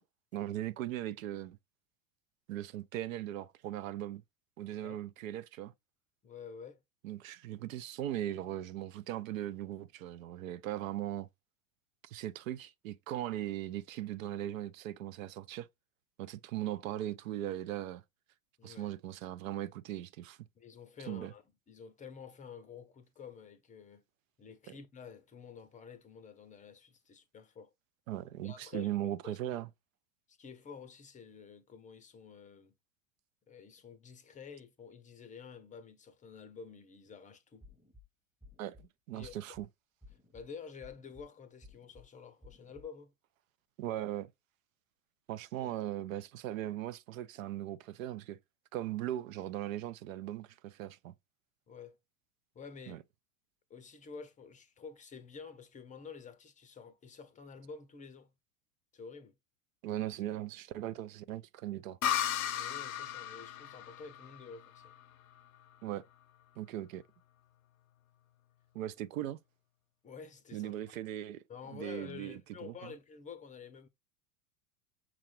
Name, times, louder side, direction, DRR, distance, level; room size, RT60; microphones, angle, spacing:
voice 1, 0.3-1.6 2.5-4.2 4.6-5.7 7.0-11.3 12.0-15.7 16.2-18.0 18.6-20.4 21.1-21.3 28.1-29.7 38.6-39.7 43.8-44.3 45.3-48.4 48.7-51.1 52.9-53.0 59.8-62.0 65.8-66.0 66.6-67.0 68.7-69.4 70.5-71.4 71.7-72.9, right 13 dB, 70° right, 0.6 m, -39 dB
voice 2, 6.2-6.8 18.6-18.9 20.6-24.0 24.4-27.7 28.4-29.6 30.3-32.7 33.5-37.6 39.1-39.3 40.3-43.1 45.6-45.8 51.7-52.0 52.5-53.0 53.7-58.3 58.9-59.3 62.5-64.9 70.0-71.0 71.5-73.9, left 6 dB, 20° left, 0.5 m, -50 dB
sound 1, 37.6-38.0 38.4-38.8 39.2-39.6 40.0-40.4 40.8-41.2 41.6-42.0 42.4-42.8, left 2 dB, 5° right, 0.9 m, -56 dB
sound 2, 62.0-65.6, left 10 dB, 80° left, 0.7 m, -36 dB
5.9 x 2.4 x 3.0 m
hypercardioid pair, 95°, 42 cm